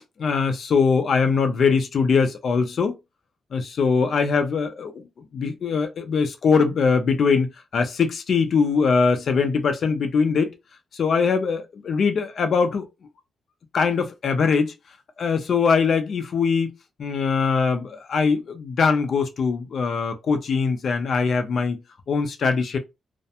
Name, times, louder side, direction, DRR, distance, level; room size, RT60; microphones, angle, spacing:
voice 1, 0.0-2.9 3.5-4.9 5.3-10.5 10.9-12.9 13.7-14.7 15.2-16.7 17.0-21.8 22.1-22.8, left 5 dB, 50° left, 0.5 m, -22 dB
2.4 x 2.1 x 2.8 m
wide cardioid pair, 150°, 0 cm